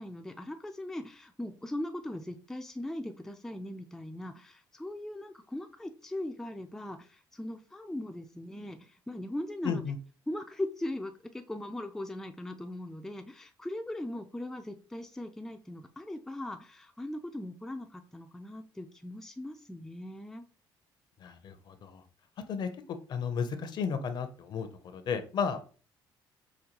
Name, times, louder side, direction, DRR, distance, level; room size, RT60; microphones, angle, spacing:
voice 1, 0.0-9.8 10.3-20.4, left 1 dB, 5° left, 6 dB, 0.4 m, -39 dB
voice 2, 9.6-10.0 21.2-22.0 22.5-25.7, left 6 dB, 55° left, 9 dB, 0.6 m, -34 dB
5.1 x 2.2 x 2.9 m, 0.38 s
cardioid pair, 110°, 9 cm